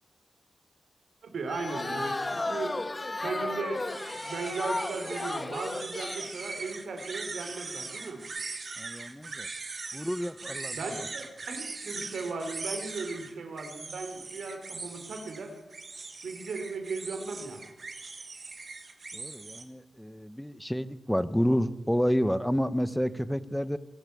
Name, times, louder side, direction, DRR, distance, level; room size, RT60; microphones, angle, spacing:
voice 1, 1.2-2.8 3.2-3.8 4.2-8.2 10.7-15.5 16.2-17.6, right 4 dB, 85° right, 5 dB, 3.7 m, -37 dB
sound 1, 1.5-6.3, left 2 dB, 25° left, 1.3 m, -34 dB
sound 2, 3.8-19.6, right 4 dB, 45° right, 2.1 m, -41 dB
voice 2, 8.8-9.5 9.9-10.9 19.1-23.8, equal, 5° left, 13 dB, 1.0 m, -29 dB
23.5 x 14.0 x 8.4 m, 1.1 s
wide cardioid pair, 115°, 0 cm